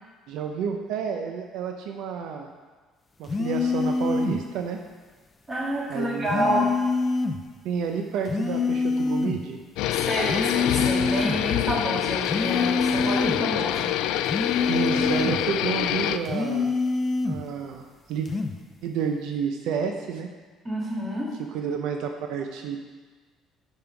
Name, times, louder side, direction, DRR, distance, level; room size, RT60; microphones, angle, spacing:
voice 1, 0.3-2.5 3.2-4.8 5.9-6.7 7.6-9.6 14.7-16.7 17.3-18.3 18.8-20.3 21.5-22.8, right 7 dB, 75° right, 4 dB, 0.6 m, -30 dB
sound 1, 3.3-4.4 6.3-7.4 8.3-9.4 10.3-11.4 12.2-13.4 14.3-15.4 16.2-17.4 18.2-18.6, left 4 dB, 20° left, 0.5 m, -25 dB
voice 2, 5.5-6.7 9.9-13.9 20.6-21.3, equal, 15° right, -4 dB, 1.9 m, -28 dB
sound 2, 9.8-16.2, left 13 dB, 80° left, 0.3 m, -26 dB
8.7 x 5.6 x 4.6 m, 1.4 s
cardioid pair, 155°, 0 cm